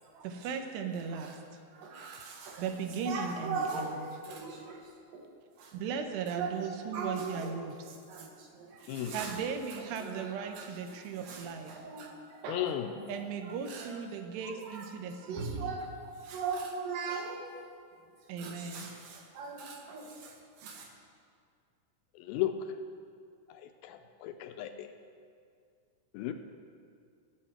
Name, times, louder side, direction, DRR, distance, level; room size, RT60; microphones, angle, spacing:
voice 1, 0.2-1.4 2.6-4.1 5.7-7.8 8.8-11.8 13.1-15.7 18.3-18.9, right 6 dB, 90° right, 5 dB, 3.0 m, -37 dB
voice 2, 1.7-2.7 3.1-4.8 5.1-5.3 5.6-5.7 6.3-7.6 8.1-9.4 10.0-12.7 13.7-14.0 14.4-14.9 15.2-15.9 16.2-17.4 18.4-20.3 20.6-20.9, right 4 dB, 65° right, 0 dB, 2.8 m, -39 dB
voice 3, 8.9-9.2 12.5-13.1 22.2-22.8 23.5-24.9 26.1-26.3, left 11 dB, 80° left, 7 dB, 2.2 m, -35 dB
19.0 x 7.4 x 4.4 m, 2.2 s
omnidirectional pair, 4.8 m